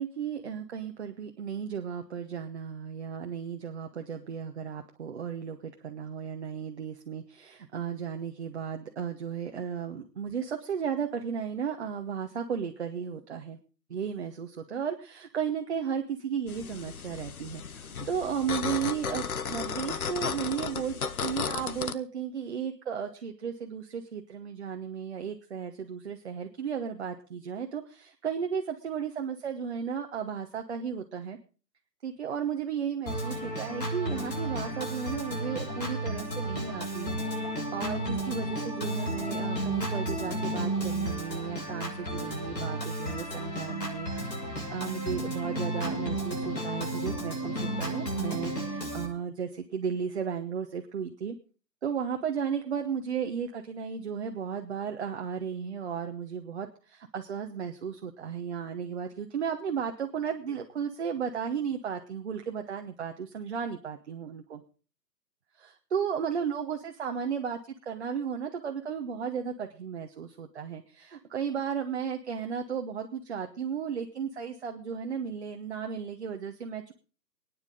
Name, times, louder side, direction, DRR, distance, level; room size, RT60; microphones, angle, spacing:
voice 1, 0.0-13.6 13.9-31.4 32.0-44.1 44.7-51.3 51.8-64.6 65.5-76.9, right 7 dB, 40° right, 4 dB, 1.2 m, -34 dB
sound 1, 16.5-21.9, left 6 dB, 60° left, 1.0 m, -34 dB
Organ, 33.1-49.1, right 1 dB, 80° left, 6.2 m, -33 dB
23.5 x 9.8 x 3.8 m, 0.38 s
figure-of-eight pair, 145°, 50 cm